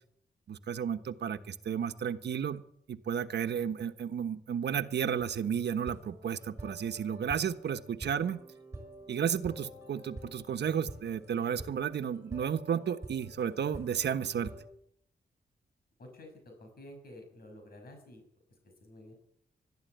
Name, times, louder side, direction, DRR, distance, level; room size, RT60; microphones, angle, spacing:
voice 1, 0.5-2.6 2.9-8.4 9.1-14.5, right 8 dB, 85° right, 9 dB, 1.2 m, -33 dB
sound 1, 5.2-14.6, right 1 dB, 15° right, 5.9 m, -48 dB
voice 2, 16.0-16.3 16.6-18.2 18.8-19.2, left 1 dB, 60° left, 4 dB, 6.2 m, -50 dB
22.0 x 13.0 x 9.4 m, 0.72 s
wide cardioid pair, 155°, 17 cm